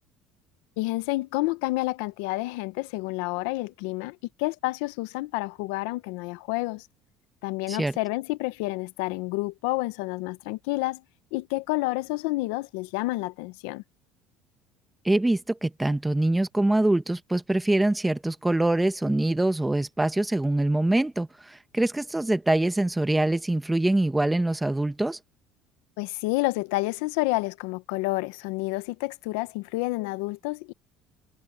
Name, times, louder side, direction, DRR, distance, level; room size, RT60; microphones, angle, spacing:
voice 1, 0.8-6.9 7.4-11.0 11.3-13.8 26.0-30.7, left 21 dB, 85° left, 0.8 m, -29 dB
voice 2, 15.0-25.2, right 2 dB, 10° right, 1.3 m, -24 dB
supercardioid pair, 100°, 0 cm